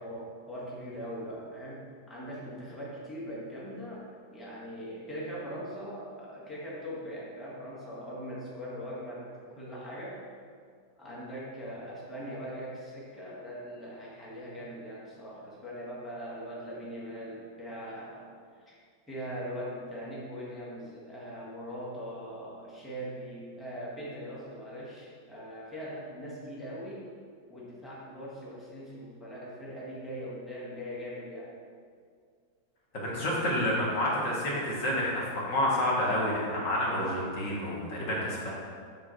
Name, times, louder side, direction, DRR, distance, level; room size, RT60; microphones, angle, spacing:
voice 1, 0.0-10.2 11.0-18.3 18.7-18.8 19.1-27.1 27.5-31.5, equal, ahead, -7 dB, 1.3 m, -41 dB
voice 2, 32.9-38.5, left 1 dB, 45° left, -4 dB, 1.8 m, -29 dB
7.2 x 3.7 x 6.3 m, 2.1 s
omnidirectional pair, 2.1 m